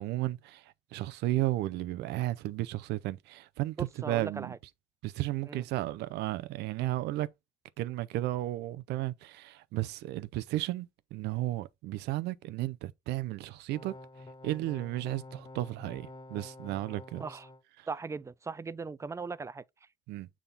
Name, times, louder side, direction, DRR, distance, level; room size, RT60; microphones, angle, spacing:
voice 1, 0.0-4.5 5.0-7.3 7.8-13.9 14.4-17.2 17.8-17.9 20.1-20.3, right 16 dB, 85° right, 0.6 m, -34 dB
voice 2, 3.8-4.6 5.5-5.6 17.2-17.5 17.9-19.9, right 4 dB, 15° right, 0.4 m, -39 dB
sound 1, 13.7-17.6, left 2 dB, 25° left, 0.8 m, -48 dB
7.0 x 3.7 x 4.0 m
cardioid pair, 110°, 17 cm